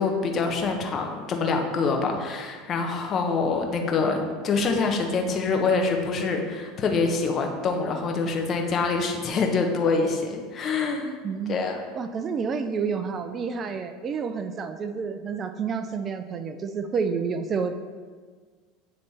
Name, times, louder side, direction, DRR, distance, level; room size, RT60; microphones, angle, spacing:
voice 1, 0.0-11.1 11.5-11.8, left 4 dB, 35° left, 3 dB, 1.0 m, -25 dB
voice 2, 11.2-11.6 11.9-17.7, right 5 dB, 35° right, 8 dB, 0.4 m, -29 dB
9.2 x 3.3 x 4.2 m, 1.5 s
supercardioid pair, 110°, 0 cm